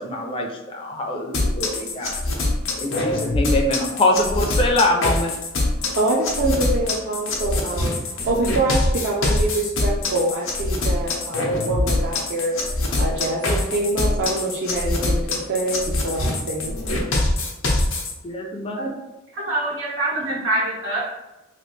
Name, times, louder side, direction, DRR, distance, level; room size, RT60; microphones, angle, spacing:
voice 1, 0.0-2.2 2.8-5.3 18.2-18.9, left 1 dB, 25° left, 2 dB, 0.4 m, -23 dB
sound 1, 1.3-18.1, left 2 dB, 80° left, 0.7 m, -23 dB
voice 2, 5.9-12.5 13.0-17.1, right 2 dB, 55° right, -3 dB, 0.5 m, -25 dB
voice 3, 19.3-21.0, right 1 dB, 90° right, -6 dB, 1.4 m, -24 dB
3.0 x 2.4 x 3.1 m, 0.99 s
head